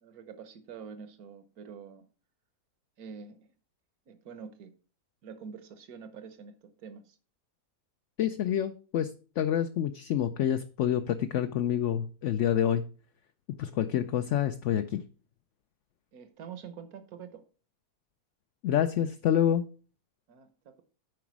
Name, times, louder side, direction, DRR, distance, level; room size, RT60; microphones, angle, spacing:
voice 1, 0.0-2.1 3.0-3.4 4.1-4.7 5.2-7.2 16.1-17.4 20.3-20.8, right 6 dB, 75° right, 10 dB, 1.5 m, -46 dB
voice 2, 8.2-12.8 13.6-15.0 18.6-19.6, left 10 dB, 65° left, 8 dB, 0.8 m, -27 dB
9.3 x 5.0 x 5.9 m, 0.38 s
omnidirectional pair, 1.6 m